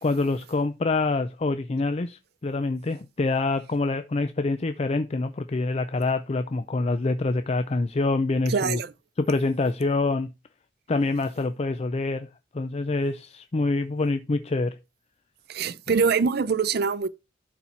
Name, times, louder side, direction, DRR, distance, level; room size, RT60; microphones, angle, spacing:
voice 1, 0.0-8.8 9.2-10.3 10.9-12.3 12.5-14.8, left 3 dB, 35° left, 0.5 m, -26 dB
voice 2, 8.5-8.9 15.5-17.1, right 5 dB, 60° right, 0.5 m, -24 dB
11.5 x 4.2 x 4.5 m
head